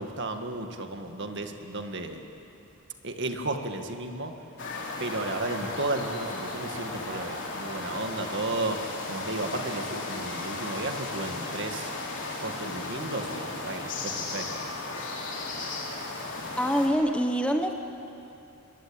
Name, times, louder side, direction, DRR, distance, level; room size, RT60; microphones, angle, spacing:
voice 1, 0.0-2.2 3.0-4.4 5.0-11.9 12.4-14.6, right 2 dB, 55° right, 5 dB, 2.0 m, -34 dB
sound 1, 4.6-16.9, left 2 dB, 55° left, 4.0 m, -35 dB
voice 2, 16.6-17.7, equal, 5° left, 4 dB, 1.2 m, -25 dB
25.0 x 22.0 x 8.9 m, 2.8 s
head